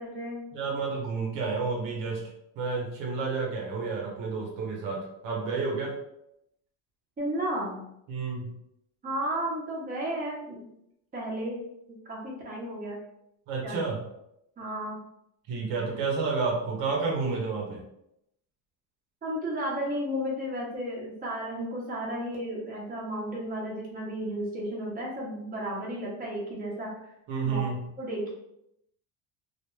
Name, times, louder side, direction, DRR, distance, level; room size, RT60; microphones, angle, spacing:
voice 1, 0.0-0.5 7.2-7.8 9.0-10.7 11.1-11.6 12.0-13.0 13.6-13.8 14.6-15.0 19.2-26.9 27.4-27.7 28.0-28.3, right 1 dB, 20° right, -4 dB, 0.8 m, -33 dB
voice 2, 0.5-2.2 2.6-6.0 8.1-8.5 13.5-14.0 15.5-17.8 27.3-27.8, right 4 dB, 60° right, -1 dB, 0.8 m, -30 dB
2.5 x 2.2 x 3.0 m, 0.80 s
cardioid pair, 115°, 48 cm